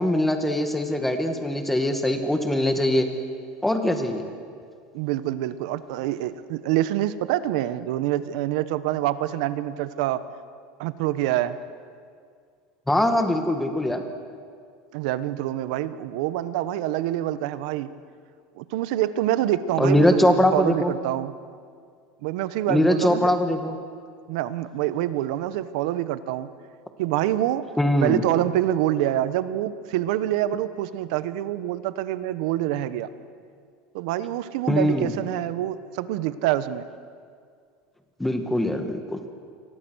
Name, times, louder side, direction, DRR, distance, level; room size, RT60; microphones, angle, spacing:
voice 1, 0.0-3.1 3.6-4.3 12.9-14.0 19.8-20.9 22.7-23.7 27.8-28.2 34.7-35.1 38.2-39.2, left 1 dB, 5° left, 6 dB, 2.0 m, -22 dB
voice 2, 4.9-10.2 10.8-11.6 14.9-17.9 18.6-21.3 22.2-23.3 24.3-26.5 27.0-27.7 28.0-33.1 33.9-36.8, right 13 dB, 70° right, 13 dB, 1.2 m, -26 dB
29.0 x 23.5 x 6.5 m, 2.1 s
supercardioid pair, 150°, 4 cm